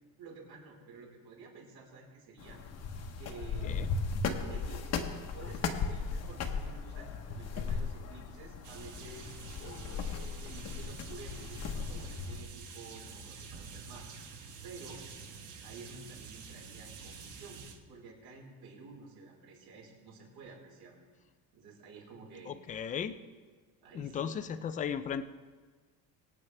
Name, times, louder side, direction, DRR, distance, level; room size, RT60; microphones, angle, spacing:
voice 1, 0.2-2.6 3.2-3.8 4.4-9.3 9.6-14.1 14.6-15.0 15.6-21.0 21.5-22.6 23.8-24.5, right 4 dB, 65° right, -3 dB, 4.4 m, -51 dB
sound 1, 2.4-12.4, left 5 dB, 40° left, 1.0 m, -37 dB
sound 2, 8.6-17.8, right 5 dB, 50° right, 1.4 m, -48 dB
voice 2, 22.5-23.2 23.9-25.2, left 8 dB, 20° left, 11 dB, 0.3 m, -36 dB
23.5 x 8.7 x 3.3 m, 1.4 s
cardioid pair, 170°, 39 cm